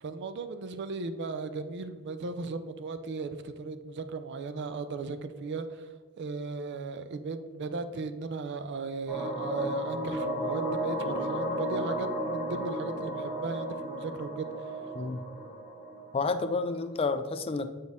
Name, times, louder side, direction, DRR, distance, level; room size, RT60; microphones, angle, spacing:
voice 1, 0.0-5.9 6.2-14.5, right 4 dB, 50° right, 11 dB, 0.4 m, -36 dB
sound 1, 9.1-16.7, equal, 5° right, 1.7 m, -34 dB
voice 2, 14.9-15.3 16.1-17.7, left 4 dB, 25° left, 10 dB, 0.3 m, -30 dB
7.8 x 4.2 x 3.5 m, 1.5 s
head